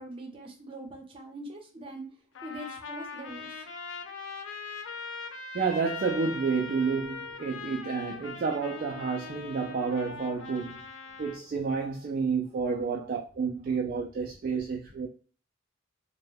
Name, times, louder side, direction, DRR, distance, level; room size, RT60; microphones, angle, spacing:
voice 1, 0.0-2.1 2.4-3.5 12.5-12.6, right 1 dB, 30° right, 0.7 m, -42 dB
Trumpet, 2.3-11.4, left 5 dB, 80° left, 0.5 m, -41 dB
voice 2, 5.5-10.8 11.2-15.1, right 5 dB, 50° right, 0.3 m, -30 dB
2.1 x 2.1 x 3.2 m
head